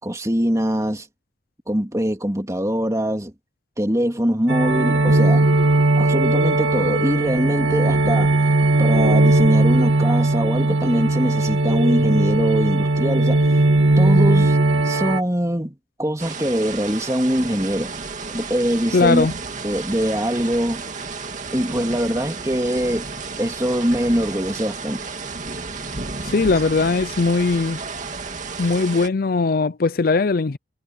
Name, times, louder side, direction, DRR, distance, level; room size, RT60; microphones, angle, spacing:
voice 1, 0.0-1.1 1.7-3.3 3.8-5.5 6.0-8.3 8.8-13.4 14.0-14.6 14.8-17.9 18.3-19.3 19.6-20.8 21.5-23.1 23.4-25.0, equal, 15° right, 3.1 m, -22 dB
sound 1, 4.5-15.2, right 2 dB, 85° right, 1.8 m, -18 dB
sound 2, 16.2-29.1, right 4 dB, 40° right, 2.4 m, -32 dB
voice 2, 18.9-19.3 26.2-27.8 28.6-30.6, left 3 dB, 50° left, 0.5 m, -19 dB
head